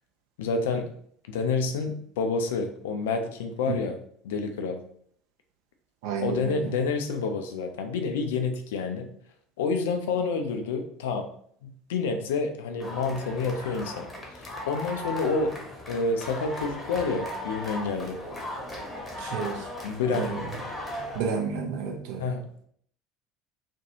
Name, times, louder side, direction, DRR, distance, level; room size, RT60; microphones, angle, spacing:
voice 1, 0.4-0.9 1.3-4.0 4.2-4.8 6.2-9.1 9.6-11.3 11.6-14.1 14.7-15.5 15.9-18.2 19.8-20.3 22.2-22.6, left 4 dB, 65° left, 5 dB, 0.3 m, -28 dB
voice 2, 6.0-6.7 19.2-19.7 20.1-20.5 21.1-22.3, right 6 dB, 60° right, 2 dB, 0.5 m, -31 dB
sound 1, 12.8-21.2, left 1 dB, 15° left, 0.8 m, -37 dB
2.5 x 2.2 x 2.8 m, 0.62 s
figure-of-eight pair, 65°, 0 cm